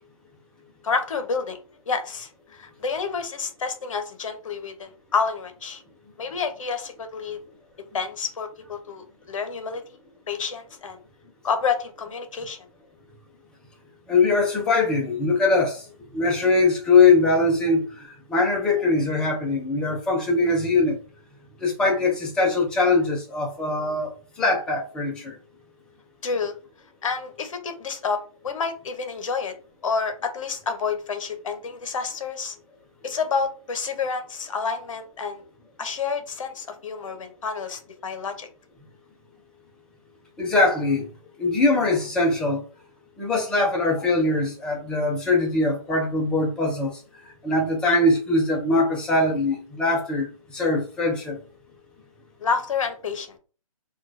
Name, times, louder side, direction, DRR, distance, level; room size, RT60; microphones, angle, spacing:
voice 1, 0.8-1.6 1.9-5.8 6.2-7.4 7.9-9.8 10.3-11.0 11.4-12.6 26.2-26.5 27.0-29.5 29.8-32.6 33.0-35.4 35.8-38.5 52.4-53.4, left 5 dB, 60° left, 0.8 m, -29 dB
voice 2, 14.1-15.9 16.1-21.0 21.6-25.3 40.4-41.1 41.4-42.6 43.2-51.4, left 3 dB, 5° left, 0.4 m, -22 dB
3.7 x 2.3 x 2.6 m
hypercardioid pair, 145°, 19 cm